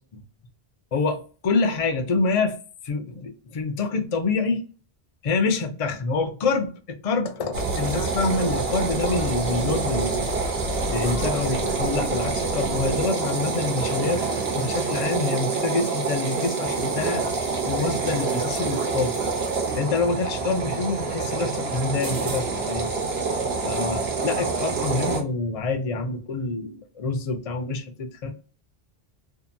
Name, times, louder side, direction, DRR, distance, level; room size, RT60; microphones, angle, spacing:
voice 1, 0.9-2.6 2.8-4.6 5.2-6.7 7.0-10.3 10.9-14.2 14.5-17.2 17.6-19.1 19.8-22.9 23.6-28.3, left 3 dB, 45° left, 0.5 m, -26 dB
sound 1, 7.5-25.2, right 4 dB, 75° right, 1.0 m, -26 dB
2.7 x 2.5 x 2.5 m
omnidirectional pair, 1.0 m